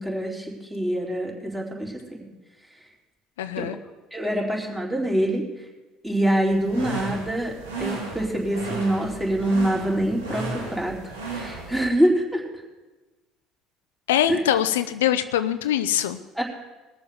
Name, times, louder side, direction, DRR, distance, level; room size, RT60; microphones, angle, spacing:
voice 1, 0.0-2.0 3.6-3.7 4.1-5.4 6.0-11.0 11.3-12.4 14.3-14.4 16.4-16.5, right 1 dB, 10° right, -2 dB, 4.2 m, -25 dB
voice 2, 3.4-3.8 14.1-16.2, left 11 dB, 80° left, 11 dB, 0.6 m, -23 dB
sound 1, 6.5-11.9, right 3 dB, 85° right, 2.5 m, -34 dB
20.5 x 7.0 x 7.0 m, 1.2 s
hypercardioid pair, 65°, 0 cm